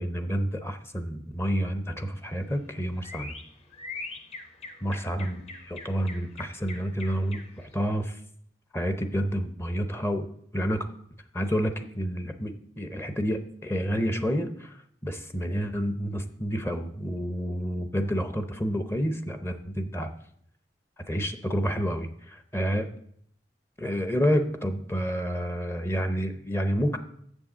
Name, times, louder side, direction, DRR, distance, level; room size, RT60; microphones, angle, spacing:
voice 1, 0.0-3.3 4.8-8.2 8.7-10.3 10.5-10.9 11.3-20.1 21.1-22.9 23.8-27.0, equal, 15° left, 8 dB, 0.6 m, -29 dB
sound 1, 2.1-7.8, left 3 dB, 35° left, 0.9 m, -43 dB
7.2 x 6.3 x 7.2 m, 0.68 s
head